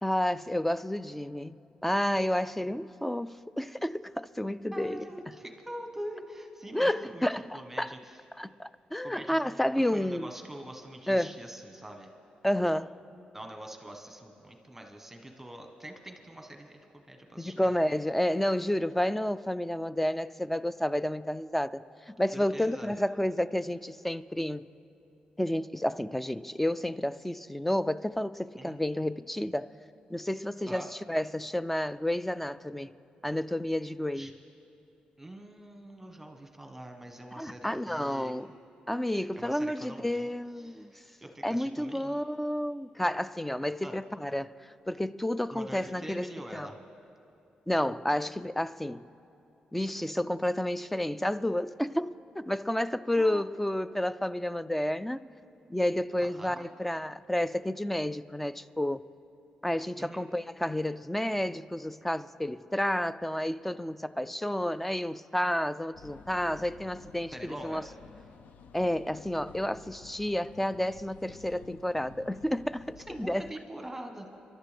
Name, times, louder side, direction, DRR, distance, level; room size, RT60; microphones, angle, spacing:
voice 1, 0.0-5.1 6.7-7.9 8.4-10.3 11.1-11.4 12.4-12.9 17.4-24.7 25.4-29.7 30.1-32.9 33.2-34.3 37.4-38.5 38.9-40.9 41.4-46.7 47.7-49.1 49.7-55.3 55.7-59.1 59.6-67.8 68.7-73.5, left 1 dB, 5° left, 0.3 m, -30 dB
voice 2, 4.7-8.2 9.0-12.1 12.7-12.9 13.3-16.8 17.1-17.7 22.3-22.9 28.6-28.8 30.7-30.9 34.1-34.3 35.2-38.3 39.1-40.3 40.6-42.2 43.8-43.9 45.5-46.8 53.2-53.4 56.2-56.7 60.0-60.3 67.3-67.9 73.1-74.4, right 1 dB, 10° right, 1.2 m, -44 dB
sound 1, 65.9-73.5, left 6 dB, 75° left, 0.5 m, -52 dB
28.0 x 12.0 x 3.4 m
cardioid pair, 90°, 3 cm